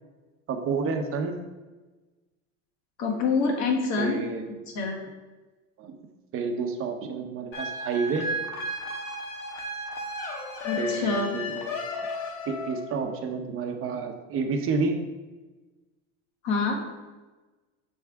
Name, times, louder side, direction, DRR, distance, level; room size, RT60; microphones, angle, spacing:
voice 1, 0.5-1.3 4.0-4.4 5.8-5.9 6.3-8.3 10.8-11.6 12.5-15.0, right 4 dB, 35° right, 4 dB, 0.8 m, -29 dB
voice 2, 3.0-4.2 4.7-5.0 10.6-11.3 16.4-16.8, left 4 dB, 45° left, 1 dB, 1.4 m, -26 dB
sound 1, 7.5-13.0, left 1 dB, 75° left, 1.3 m, -34 dB
7.1 x 3.6 x 4.5 m, 1.2 s
supercardioid pair, 140°, 40 cm